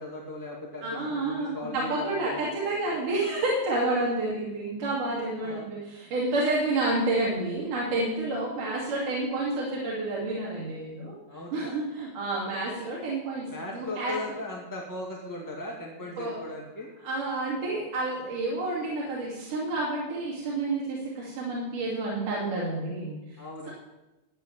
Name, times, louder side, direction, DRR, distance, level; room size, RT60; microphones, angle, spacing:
voice 1, 0.0-2.5 5.4-5.7 11.3-11.7 13.5-16.9 23.4-23.7, left 2 dB, 10° left, -2 dB, 1.1 m, -38 dB
voice 2, 0.8-11.2 11.5-14.3 16.2-16.4 17.0-23.4, right 2 dB, 65° right, -5 dB, 4.0 m, -29 dB
12.5 x 8.0 x 8.9 m, 1.0 s
omnidirectional pair, 4.0 m